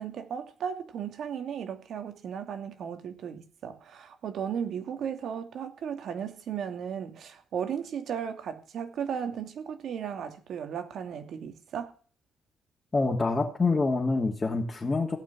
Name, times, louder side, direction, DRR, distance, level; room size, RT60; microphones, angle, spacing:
voice 1, 0.0-11.9, right 8 dB, 65° right, 2.6 m, -35 dB
voice 2, 12.9-15.2, left 3 dB, 25° left, 2.9 m, -26 dB
17.0 x 6.1 x 9.9 m
cardioid pair, 90°, 0 cm